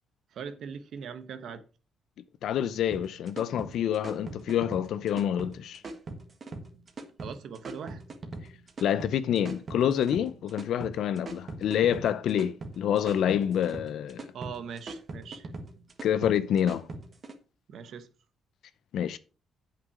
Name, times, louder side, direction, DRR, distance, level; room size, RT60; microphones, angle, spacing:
voice 1, 0.3-1.6 7.2-8.0 14.3-15.5 17.7-18.1, right 6 dB, 65° right, 1.0 m, -40 dB
voice 2, 2.4-5.8 8.8-14.3 16.0-16.9 18.9-19.2, left 9 dB, 75° left, 0.6 m, -27 dB
sound 1, 2.9-17.3, right 2 dB, 40° right, 1.6 m, -41 dB
8.1 x 6.0 x 4.9 m
cardioid pair, 90°, 0 cm